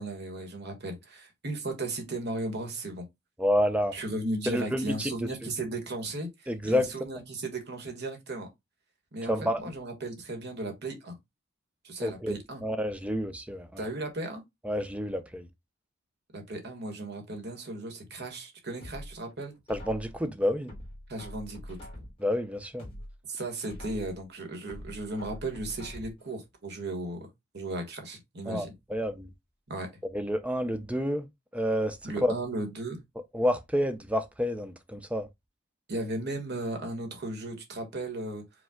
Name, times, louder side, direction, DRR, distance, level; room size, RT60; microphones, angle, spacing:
voice 1, 0.0-3.1 3.9-8.5 9.1-11.2 11.8-12.6 13.8-14.4 16.3-19.5 21.1-21.8 23.3-27.3 27.5-28.7 29.7-29.9 32.0-33.0 35.9-38.4, right 2 dB, 55° right, 1.3 m, -36 dB
voice 2, 3.4-3.9 4.5-5.3 6.5-6.9 9.3-9.7 12.0-12.4 12.6-13.8 14.6-15.5 19.7-20.7 22.2-22.9 28.5-29.3 30.1-31.3 31.5-32.3 33.3-35.3, equal, 5° right, 0.5 m, -29 dB
sound 1, 18.8-20.2 20.7-22.3 22.7-24.2 24.7-26.3 26.7-26.8, left 1 dB, 25° left, 1.7 m, -44 dB
5.1 x 2.3 x 3.6 m
head